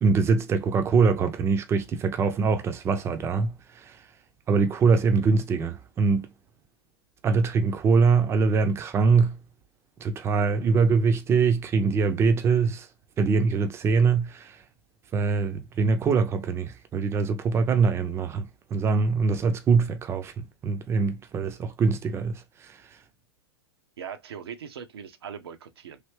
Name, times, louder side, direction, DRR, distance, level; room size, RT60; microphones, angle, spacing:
voice 1, 0.0-4.1 4.5-6.3 7.2-9.4 10.0-12.9 13.2-14.6 15.1-23.0, right 5 dB, 20° right, 0.5 m, -23 dB
voice 2, 24.0-26.0, right 7 dB, 70° right, 0.6 m, -40 dB
3.3 x 2.7 x 3.0 m
hypercardioid pair, 105°, 14 cm